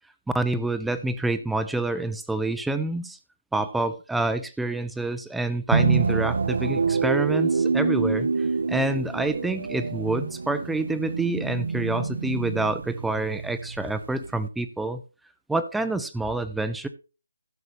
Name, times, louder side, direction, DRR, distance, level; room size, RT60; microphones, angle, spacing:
voice 1, 0.3-3.2 3.5-8.3 8.7-15.0 15.5-16.9, right 2 dB, ahead, 11 dB, 0.5 m, -27 dB
sound 1, 5.7-14.5, right 5 dB, 65° right, 0.7 m, -26 dB
16.0 x 6.7 x 3.1 m, 0.33 s
figure-of-eight pair, 165°, 0 cm